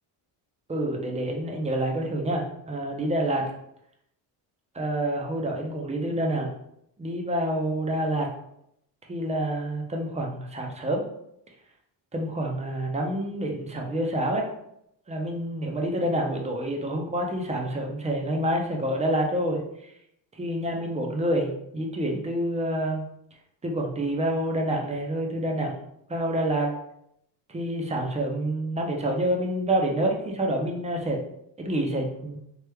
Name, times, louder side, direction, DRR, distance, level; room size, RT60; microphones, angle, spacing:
voice 1, 0.7-3.5 4.7-6.5 7.0-8.3 9.1-11.0 12.1-14.5 15.1-19.6 20.4-23.0 23.6-25.7 26.1-26.7 27.5-31.2 31.6-32.4, right 1 dB, 15° right, 1 dB, 0.5 m, -27 dB
3.3 x 3.0 x 2.2 m, 0.77 s
cardioid pair, 105°, 45 cm